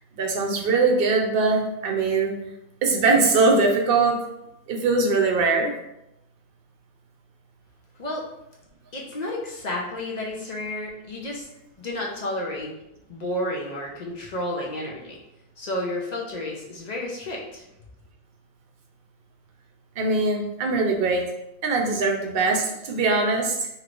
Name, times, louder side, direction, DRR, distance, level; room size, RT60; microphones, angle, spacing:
voice 1, 0.1-2.4 2.8-4.3 4.7-5.8 20.0-21.3 21.6-23.7, right 3 dB, 65° right, 1 dB, 0.8 m, -21 dB
voice 2, 8.9-11.5 11.8-12.7 13.1-15.2 15.6-17.6, left 1 dB, 50° left, -2 dB, 0.6 m, -31 dB
3.1 x 2.9 x 2.5 m, 0.86 s
omnidirectional pair, 1.1 m